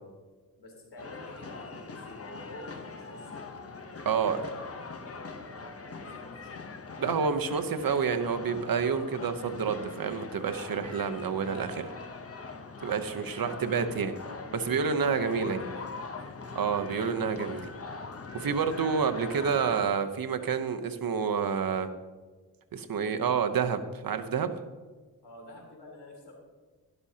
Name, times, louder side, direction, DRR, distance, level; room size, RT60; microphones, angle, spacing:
voice 1, 0.6-3.4 4.0-6.7 13.3-14.4 14.7-16.4 25.2-26.3, left 2 dB, 80° left, -1 dB, 3.7 m, -48 dB
sound 1, 1.0-19.8, left 4 dB, 35° left, 0.9 m, -42 dB
voice 2, 4.0-4.4 7.0-11.9 12.8-14.1 14.7-15.7 16.5-17.7 18.3-21.9 22.7-24.5, right 6 dB, 60° right, 8 dB, 0.9 m, -29 dB
12.0 x 12.0 x 2.8 m, 1.3 s
wide cardioid pair, 100°, 40 cm